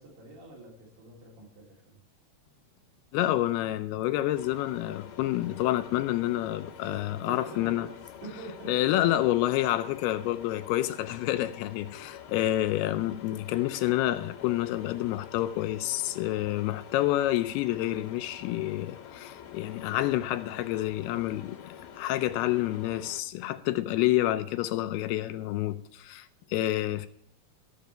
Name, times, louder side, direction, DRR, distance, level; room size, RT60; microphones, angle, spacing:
voice 1, 0.0-2.0 6.8-8.0 8.2-8.9, right 2 dB, 75° right, 5.3 m, -45 dB
voice 2, 3.1-7.9 8.7-27.1, left 14 dB, 80° left, 2.5 m, -28 dB
sound 1, 4.3-23.2, left 9 dB, 60° left, 2.9 m, -47 dB
14.0 x 7.1 x 4.5 m
omnidirectional pair, 4.7 m